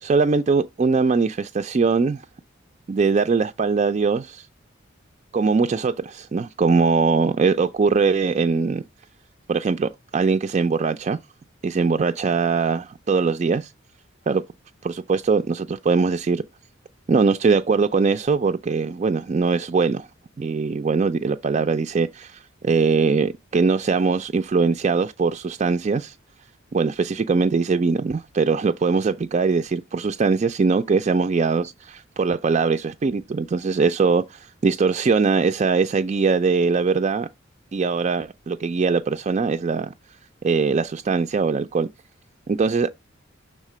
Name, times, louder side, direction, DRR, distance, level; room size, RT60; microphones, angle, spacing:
voice 1, 0.0-2.2 2.9-4.5 5.3-8.8 9.5-11.2 11.6-13.7 14.3-14.4 14.8-16.4 17.1-20.1 20.4-26.2 26.7-37.3 37.7-39.9 40.4-41.9 42.5-42.9, right 4 dB, 35° right, 0.3 m, -21 dB
6.5 x 3.6 x 6.1 m
head